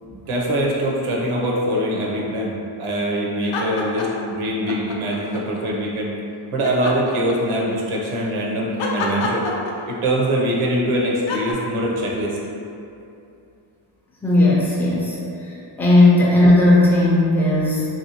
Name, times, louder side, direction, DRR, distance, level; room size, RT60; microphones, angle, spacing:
voice 1, 0.0-6.1 6.5-9.5 9.9-12.4, right 1 dB, 90° right, -3 dB, 0.7 m, -23 dB
sound 1, 3.4-4.3 4.7-5.6 6.6-7.8 8.8-10.2 11.3-11.5, left 3 dB, 70° left, 0.5 m, -28 dB
voice 2, 14.2-15.2 15.4-15.5 15.8-17.9, left 1 dB, 5° left, -6 dB, 0.3 m, -15 dB
3.1 x 2.7 x 2.7 m, 2.7 s
wide cardioid pair, 150°, 48 cm